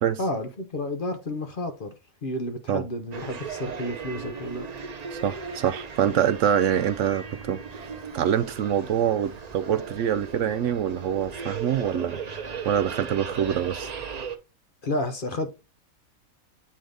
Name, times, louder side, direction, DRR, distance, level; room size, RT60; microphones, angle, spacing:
voice 1, 0.2-1.9 2.2-4.7 14.8-15.5, left 1 dB, 45° left, 0.9 m, -31 dB
sound 1, 3.1-14.4, right 5 dB, 40° right, 0.6 m, -37 dB
voice 2, 5.1-7.8 8.1-12.2 12.6-13.9, right 9 dB, 70° right, 0.8 m, -25 dB
8.5 x 3.9 x 3.3 m
omnidirectional pair, 1.5 m